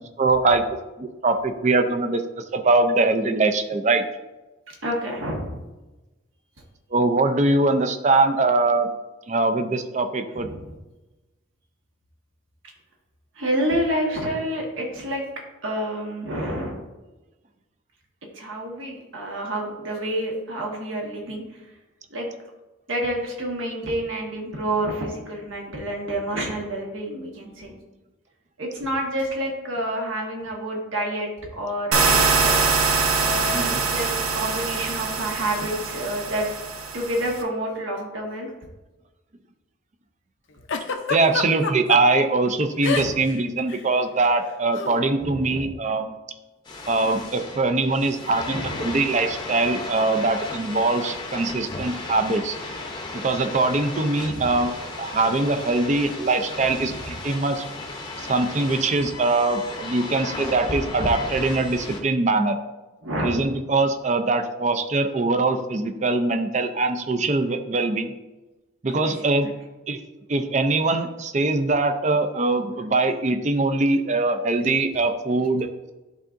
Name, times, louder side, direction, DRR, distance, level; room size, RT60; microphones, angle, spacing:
voice 1, 0.2-0.6 1.0-4.0 6.9-8.9 9.3-10.5 33.5-33.8 41.1-46.1 46.9-52.6 53.1-54.7 55.0-57.6 58.2-62.6 63.2-68.1 68.8-69.5 69.9-70.0 70.3-75.7, right 3 dB, 35° right, 7 dB, 0.4 m, -22 dB
voice 2, 4.7-5.6 10.3-10.8 13.4-15.2 15.6-16.9 18.3-21.4 22.1-22.3 22.9-27.7 28.6-31.3 31.6-32.6 33.2-36.5 36.9-38.5 42.9-43.2 45.2-45.7 48.5-48.9 54.3-54.6 63.0-63.5 69.0-69.3, right 1 dB, 70° right, -1 dB, 1.4 m, -29 dB
sound 1, 31.9-37.4, right 4 dB, 90° right, 0.8 m, -23 dB
Giggle, 40.7-42.0 42.8-43.3 43.6-43.8 44.8-45.0, left 5 dB, 65° left, 0.6 m, -27 dB
sound 2, 46.6-62.0, left 2 dB, 20° left, 0.7 m, -35 dB
11.0 x 3.7 x 2.6 m, 1.1 s
head